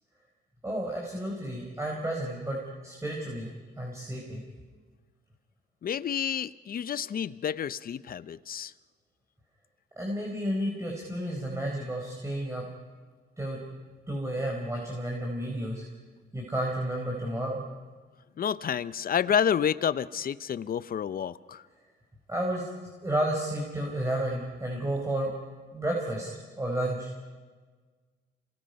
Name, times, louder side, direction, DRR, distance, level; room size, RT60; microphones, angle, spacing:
voice 1, 0.6-3.5 3.8-4.4 10.0-12.7 13.4-13.6 14.1-15.8 16.3-17.6 22.3-22.7 23.0-25.3 25.7-26.3 26.6-27.3, right 1 dB, 15° right, -1 dB, 4.3 m, -31 dB
voice 2, 5.8-8.7 18.4-21.6, left 8 dB, 45° left, 16 dB, 0.7 m, -29 dB
28.0 x 19.5 x 5.4 m, 1.4 s
cardioid pair, 90°, 20 cm